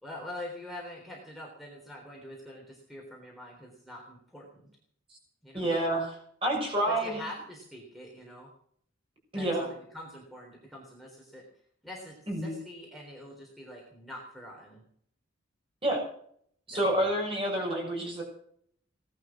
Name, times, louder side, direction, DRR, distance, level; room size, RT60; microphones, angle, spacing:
voice 1, 0.0-4.7 5.4-5.7 6.9-8.5 9.3-11.4 11.8-14.8 16.7-17.1, left 1 dB, ahead, -2 dB, 3.9 m, -45 dB
voice 2, 5.5-6.1 6.4-7.2 9.3-9.7 12.3-12.6 15.8-16.0 16.7-18.2, right 1 dB, 25° right, 0 dB, 6.6 m, -28 dB
18.5 x 11.5 x 6.1 m, 0.64 s
head